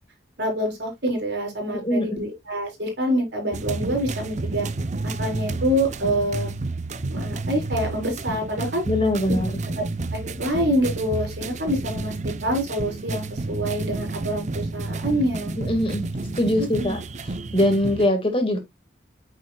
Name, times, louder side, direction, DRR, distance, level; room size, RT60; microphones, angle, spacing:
voice 1, 0.4-4.7 5.0-6.5 7.1-8.8 9.3-9.4 9.7-9.8 10.1-12.1 12.4-15.5 16.6-16.9, equal, 65° right, 4.4 m, -26 dB
voice 2, 1.7-2.2 8.9-9.6 15.6-16.1 16.4-17.0 17.5-18.6, left 1 dB, 30° left, 1.9 m, -22 dB
sound 1, 3.5-18.1, right 2 dB, 40° right, 0.6 m, -30 dB
9.1 x 6.3 x 2.3 m
head